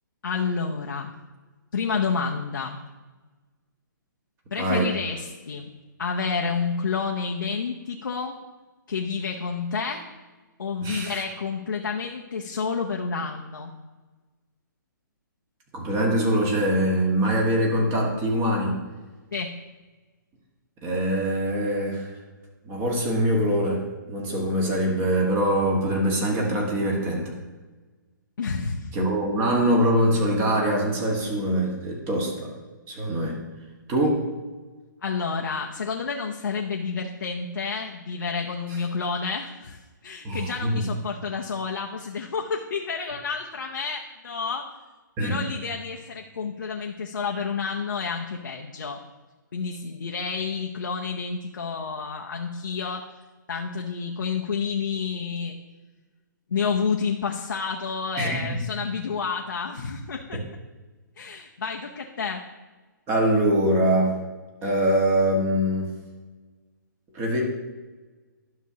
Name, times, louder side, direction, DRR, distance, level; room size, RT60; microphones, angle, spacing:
voice 1, 0.2-1.1 1.7-2.8 4.5-5.7 6.0-8.4 8.9-10.1 10.6-13.7 19.3-19.6 28.4-28.9 35.0-44.7 45.2-49.0 49.5-53.0 53.5-55.6 56.5-60.4 61.2-62.4, left 5 dB, 75° left, 0 dB, 0.8 m, -29 dB
voice 2, 4.6-4.9 10.8-11.2 15.7-18.8 20.8-22.1 22.6-27.4 28.9-32.5 32.9-33.4 33.9-34.3 40.2-40.8 45.2-45.4 58.2-58.6 63.1-64.2 64.6-65.9 67.1-67.4, right 1 dB, 25° right, -1 dB, 1.6 m, -23 dB
11.5 x 6.0 x 2.9 m, 1.3 s
hypercardioid pair, 140°, 11 cm